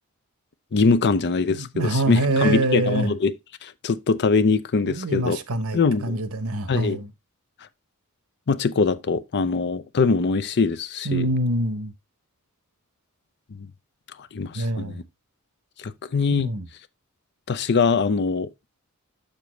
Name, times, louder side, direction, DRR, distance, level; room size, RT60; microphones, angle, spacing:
voice 1, 0.7-3.4 3.6-5.4 5.7-6.2 6.7-7.0 8.5-11.3 13.5-13.7 14.3-15.0 15.8-16.5 17.5-18.5, left 4 dB, 50° left, 0.5 m, -22 dB
voice 2, 1.5-3.2 4.9-7.1 11.0-11.9 14.5-15.0 16.3-16.7, right 1 dB, 75° right, 1.0 m, -25 dB
6.9 x 6.7 x 3.1 m
head